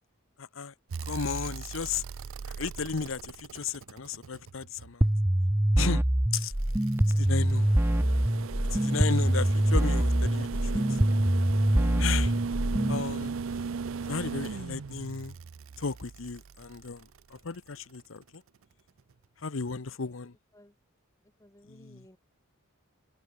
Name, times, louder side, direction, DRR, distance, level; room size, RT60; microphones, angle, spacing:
voice 1, 0.4-0.7 1.0-2.0 2.6-5.1 5.8-6.0 6.3-6.5 7.1-7.7 8.7-10.8 12.0-12.4 12.9-13.3 14.1-15.4 15.8-17.1 17.3-18.4 19.4-20.3 21.7-22.0, left 5 dB, 70° left, 0.9 m, -34 dB
sound 1, 0.9-5.1 6.4-17.6 19.1-19.2, right 5 dB, 70° right, 0.5 m, -37 dB
sound 2, 5.0-13.0, right 1 dB, 10° right, 0.6 m, -25 dB
voice 2, 19.7-20.2 20.5-20.7 21.4-22.2, equal, 15° left, 7.3 m, -57 dB
head